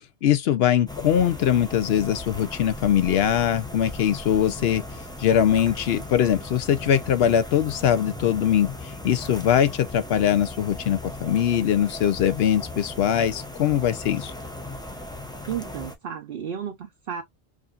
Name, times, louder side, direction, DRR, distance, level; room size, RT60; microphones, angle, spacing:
voice 1, 0.2-4.8 5.2-14.3, left 9 dB, 65° left, 0.7 m, -22 dB
sound 1, 0.9-16.0, left 2 dB, 5° left, 0.4 m, -37 dB
voice 2, 15.5-17.2, right 8 dB, 60° right, 0.8 m, -33 dB
4.9 x 2.6 x 2.3 m
omnidirectional pair, 1.2 m